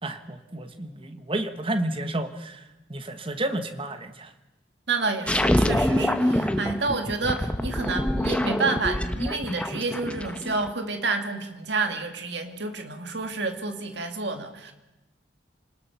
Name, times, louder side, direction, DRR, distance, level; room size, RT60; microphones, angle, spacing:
voice 1, 0.0-2.6 2.9-4.3, right 1 dB, 30° right, 9 dB, 1.4 m, -31 dB
voice 2, 4.9-14.7, right 3 dB, 60° right, 6 dB, 2.2 m, -29 dB
sound 1, 5.3-10.7, left 1 dB, 5° left, 1.0 m, -25 dB
28.5 x 19.5 x 5.9 m, 0.99 s
head